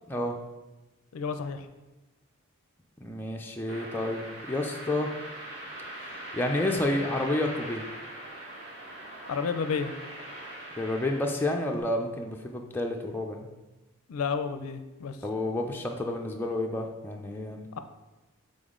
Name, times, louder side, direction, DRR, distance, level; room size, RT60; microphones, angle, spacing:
voice 1, 1.1-1.7 9.3-9.9 14.1-15.2, left 5 dB, 75° left, 9 dB, 0.4 m, -31 dB
voice 2, 3.0-5.1 6.3-7.8 10.8-13.5 15.2-17.7, left 1 dB, 10° left, 1 dB, 0.4 m, -30 dB
sound 1, 3.7-11.8, right 1 dB, 50° right, 1.7 m, -41 dB
6.9 x 3.9 x 3.7 m, 1.1 s
head